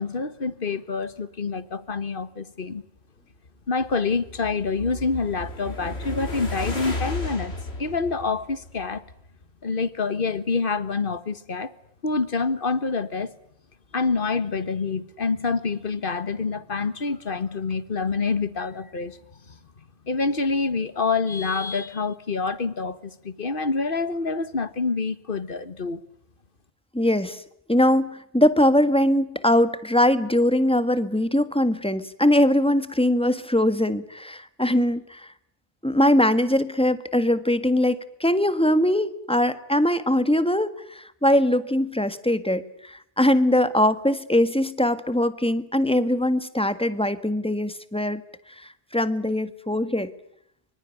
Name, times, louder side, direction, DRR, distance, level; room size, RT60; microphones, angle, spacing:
voice 1, 0.0-2.8 3.7-9.0 9.6-11.7 12.0-13.3 13.9-19.2 19.5-19.6 20.1-26.0, left 4 dB, 55° left, 1.6 m, -27 dB
sound 1, 3.6-9.1, left 2 dB, 80° left, 4.0 m, -34 dB
voice 2, 26.9-27.4 27.7-35.3 35.8-48.2 48.6-50.1, left 1 dB, 5° left, 1.5 m, -22 dB
25.5 x 24.5 x 9.3 m
omnidirectional pair, 1.1 m